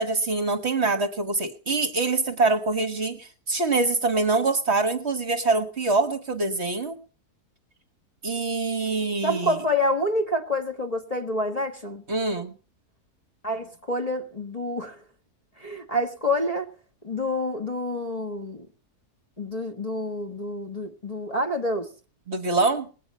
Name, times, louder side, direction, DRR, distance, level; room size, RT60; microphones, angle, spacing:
voice 1, 0.0-7.0 8.2-9.6 12.1-12.5 22.3-22.9, right 3 dB, 45° right, 1.3 m, -24 dB
voice 2, 9.2-12.0 13.4-14.9 15.6-16.7 17.0-18.7 19.4-21.9, left 1 dB, 25° left, 1.3 m, -27 dB
20.0 x 8.7 x 5.4 m
omnidirectional pair, 1.7 m